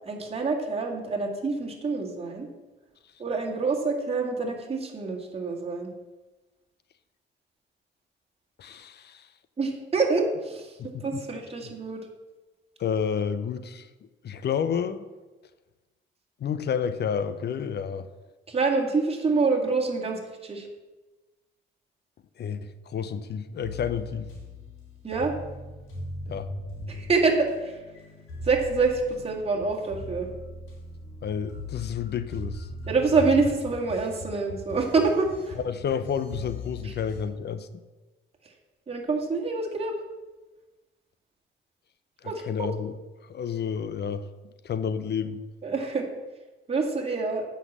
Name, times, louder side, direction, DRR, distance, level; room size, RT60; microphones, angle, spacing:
voice 1, 0.0-2.5 3.2-5.9 9.6-12.0 18.5-20.7 25.0-25.3 26.9-27.8 28.4-30.3 32.9-35.6 36.8-36.9 38.9-40.0 42.2-42.7 45.6-46.1 46.7-47.5, right 4 dB, 30° right, 0 dB, 2.2 m, -26 dB
voice 2, 8.6-9.3 10.8-11.2 12.8-13.9 14.2-15.0 16.4-18.1 22.4-24.3 26.3-26.5 31.2-32.7 35.6-37.7 42.2-42.9 43.2-44.2 44.6-45.4, left 7 dB, 55° left, 13 dB, 0.8 m, -30 dB
sound 1, 23.6-37.2, left 1 dB, 85° left, 3.6 m, -39 dB
8.2 x 5.8 x 7.3 m, 1.2 s
cardioid pair, 90°, 20 cm